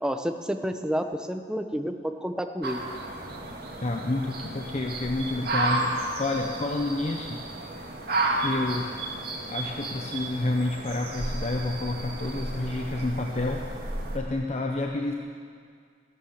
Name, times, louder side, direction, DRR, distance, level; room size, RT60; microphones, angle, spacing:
voice 1, 0.0-2.8, equal, 5° right, 6 dB, 0.8 m, -30 dB
sound 1, 2.6-14.2, right 2 dB, 60° right, 2.1 m, -32 dB
voice 2, 3.8-7.4 8.4-8.9 9.5-13.6 14.1-15.1, left 2 dB, 40° left, 2 dB, 0.8 m, -29 dB
14.5 x 11.0 x 7.3 m, 2.1 s
head